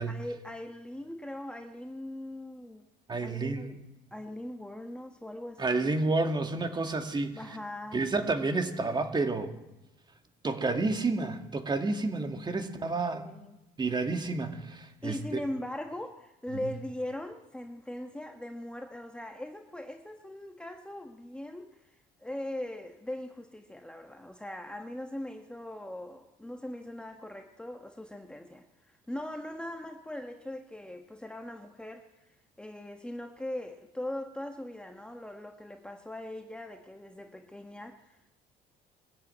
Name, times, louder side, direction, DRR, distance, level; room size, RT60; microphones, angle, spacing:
voice 1, 0.1-2.8 3.2-3.8 4.1-5.9 7.3-8.1 13.2-13.6 15.0-32.1 32.6-38.3, left 1 dB, 5° left, 5 dB, 1.3 m, -40 dB
voice 2, 3.1-3.8 5.6-7.4 7.9-9.5 10.4-13.3 13.8-15.4, right 3 dB, 25° right, 6 dB, 2.1 m, -30 dB
21.0 x 14.0 x 8.9 m, 0.96 s
cardioid pair, 110°, 17 cm